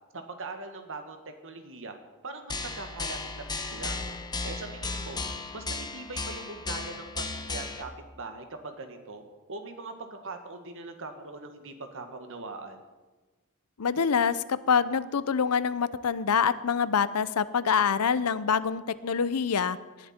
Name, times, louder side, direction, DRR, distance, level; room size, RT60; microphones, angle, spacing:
voice 1, 0.1-2.0 2.2-3.4 3.7-4.2 4.4-5.2 5.5-7.9 8.2-9.2 9.5-12.8, right 3 dB, 65° right, 6 dB, 1.7 m, -41 dB
sound 1, 2.5-7.8, left 3 dB, 20° left, 1.2 m, -35 dB
voice 2, 13.8-19.8, left 6 dB, 85° left, 15 dB, 0.6 m, -26 dB
19.0 x 11.5 x 4.4 m, 1.3 s
head